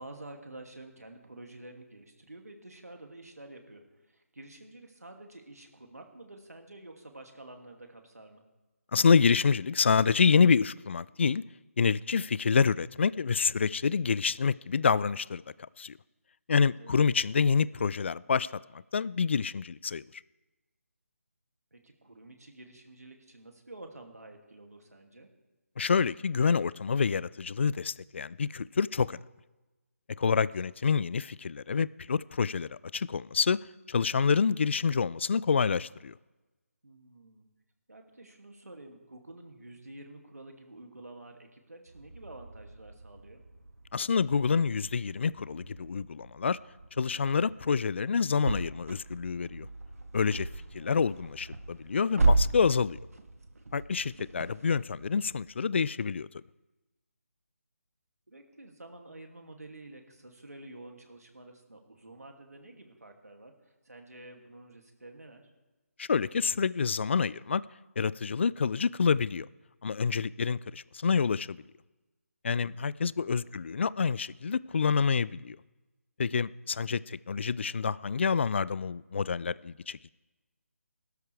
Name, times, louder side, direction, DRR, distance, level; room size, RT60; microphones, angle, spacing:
voice 1, 0.0-8.4 16.8-17.1 21.7-25.3 30.2-30.3 36.8-37.4 37.9-43.4 50.8-51.4 58.3-65.4 73.0-73.5, right 2 dB, 90° right, 2.5 m, -49 dB
voice 2, 8.9-11.4 11.8-15.4 15.8-16.0 16.5-20.0 25.8-29.2 30.2-33.6 33.9-36.1 43.9-46.6 47.0-49.7 50.1-50.5 50.7-53.0 53.7-56.3 66.0-67.6 68.0-69.5 69.8-71.6 72.4-75.6 76.2-80.1, left 5 dB, 50° left, 0.3 m, -27 dB
sound 1, 41.9-55.4, right 2 dB, 70° right, 1.7 m, -35 dB
21.0 x 12.5 x 3.4 m
figure-of-eight pair, 160°, 8 cm